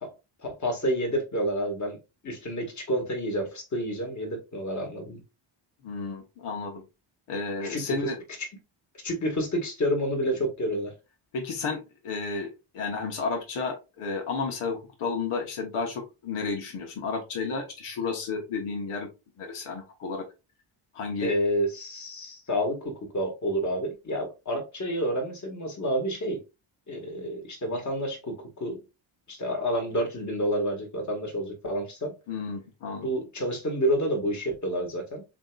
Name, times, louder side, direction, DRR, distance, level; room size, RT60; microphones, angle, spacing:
voice 1, 0.4-2.0 2.2-5.2 7.6-8.1 8.4-8.5 9.0-10.9 21.2-26.4 26.9-28.8 29.3-32.1 33.0-35.2, equal, 35° left, 1.9 m, -29 dB
voice 2, 5.8-6.8 7.3-8.2 11.3-19.1 19.4-20.2 20.9-21.3 32.3-33.1, left 4 dB, 85° left, 1.3 m, -32 dB
7.2 x 3.0 x 2.4 m
cardioid pair, 110°, 50 cm